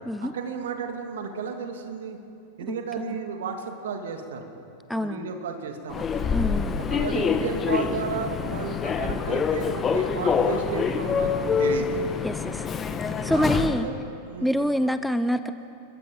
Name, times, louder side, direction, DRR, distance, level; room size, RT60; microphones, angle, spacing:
voice 1, 0.2-2.2 2.6-4.4 4.9-6.2 6.9-12.0 13.3-13.9 14.3-14.5, right 6 dB, 60° right, 4 dB, 2.5 m, -33 dB
voice 2, 2.7-3.1 4.9-5.3 6.3-6.7 12.2-12.7 13.0-13.9 14.4-15.5, equal, ahead, 11 dB, 0.7 m, -26 dB
Human voice / Subway metro underground, 5.9-13.9, left 6 dB, 20° left, 1.3 m, -26 dB
28.5 x 22.0 x 5.4 m, 2.6 s
figure-of-eight pair, 90°, 0 cm